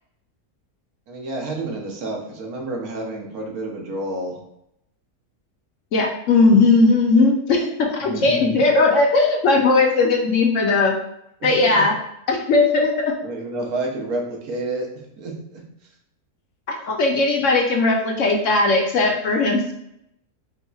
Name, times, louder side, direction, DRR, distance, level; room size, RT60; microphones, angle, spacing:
voice 1, 1.1-4.4 8.0-8.6 11.4-11.7 13.2-14.9 15.2-15.6, right 2 dB, 80° right, 0 dB, 1.4 m, -29 dB
voice 2, 5.9-10.9 11.4-11.9 12.3-13.1 16.7-19.7, left 3 dB, 65° left, 1 dB, 0.9 m, -18 dB
4.2 x 4.1 x 2.3 m, 0.80 s
omnidirectional pair, 1.5 m